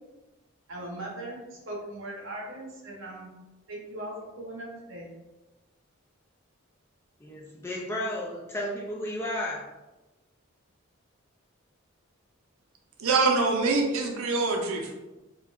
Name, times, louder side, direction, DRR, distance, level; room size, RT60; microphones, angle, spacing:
voice 1, 0.7-3.3 3.7-5.1, right 1 dB, 60° right, -2 dB, 0.9 m, -39 dB
voice 2, 7.2-9.7, left 1 dB, 10° left, -3 dB, 0.4 m, -33 dB
voice 3, 13.0-14.9, right 3 dB, 85° right, 2 dB, 0.5 m, -24 dB
4.5 x 2.3 x 2.4 m, 1.1 s
head